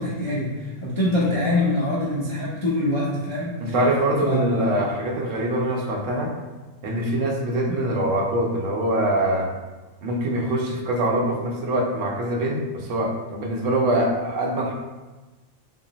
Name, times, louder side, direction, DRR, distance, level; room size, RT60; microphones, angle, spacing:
voice 1, 0.0-3.7 4.2-4.6 7.7-7.8, left 1 dB, 45° left, -8 dB, 0.3 m, -24 dB
voice 2, 3.6-6.3 6.8-9.5 10.0-14.7, right 1 dB, 70° right, 0 dB, 0.9 m, -24 dB
2.9 x 2.6 x 3.9 m, 1.2 s
omnidirectional pair, 1.4 m